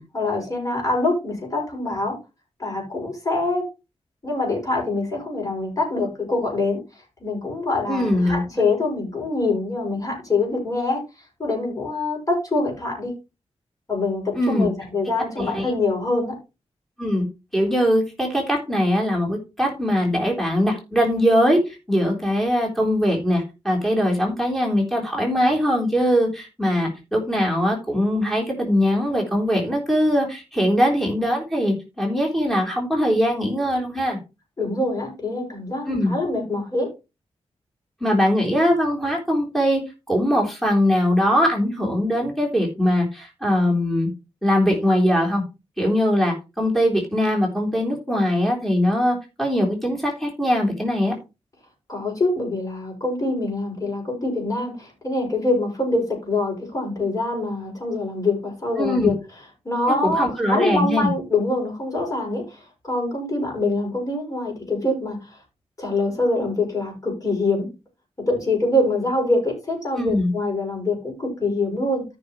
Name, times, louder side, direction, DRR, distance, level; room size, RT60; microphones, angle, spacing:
voice 1, 0.1-2.2 2.6-3.6 4.2-6.8 7.2-11.0 11.4-13.1 13.9-16.3 34.6-36.9 51.9-59.1 59.6-65.4 65.8-67.7 68.3-72.0, left 2 dB, 30° left, -1 dB, 6.3 m, -24 dB
voice 2, 7.9-8.4 14.3-14.7 15.4-15.7 17.0-17.3 17.5-34.2 35.9-36.1 38.0-39.8 40.1-44.1 44.4-45.4 45.8-51.1 58.8-59.1 60.0-61.1 69.9-70.3, equal, ahead, -1 dB, 3.6 m, -21 dB
14.0 x 6.3 x 3.1 m, 0.27 s
wide cardioid pair, 130°, 11 cm